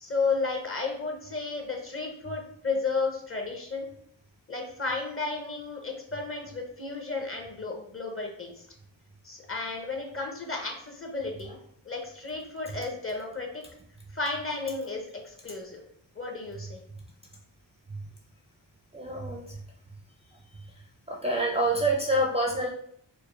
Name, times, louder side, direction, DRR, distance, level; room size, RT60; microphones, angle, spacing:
voice 1, 0.0-3.9 4.5-8.5 9.2-11.6 11.9-13.7 14.1-15.8 16.2-16.8, left 3 dB, 30° left, 2 dB, 0.9 m, -33 dB
voice 2, 18.9-19.6 21.1-22.7, right 1 dB, 15° right, -1 dB, 0.5 m, -27 dB
4.5 x 2.0 x 3.2 m, 0.68 s
cardioid pair, 70°, 44 cm